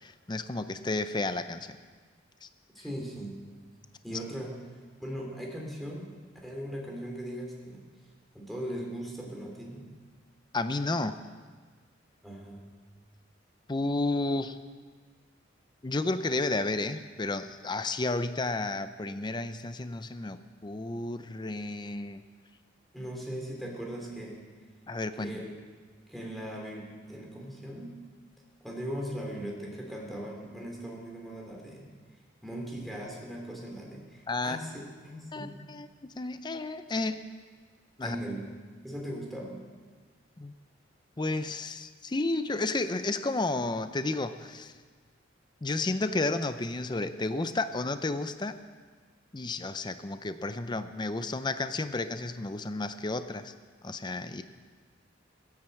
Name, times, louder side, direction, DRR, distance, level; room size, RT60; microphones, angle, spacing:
voice 1, 0.0-1.8 2.4-2.5 10.5-11.2 13.7-14.6 15.8-22.2 24.9-25.4 34.3-34.6 35.3-37.3 38.0-38.2 40.4-40.5 41.2-44.7 45.6-48.6 49.3-53.5 53.8-54.4, left 2 dB, 25° left, 10 dB, 0.5 m, -32 dB
voice 2, 2.7-3.4 4.0-4.6 5.0-6.2 6.4-7.8 8.3-9.9 12.2-12.7 22.9-24.4 25.2-25.6 26.1-28.0 28.6-31.9 32.4-35.6 38.0-38.5 38.8-39.7, equal, ahead, -2 dB, 3.4 m, -39 dB
16.5 x 10.5 x 7.9 m, 1.5 s
head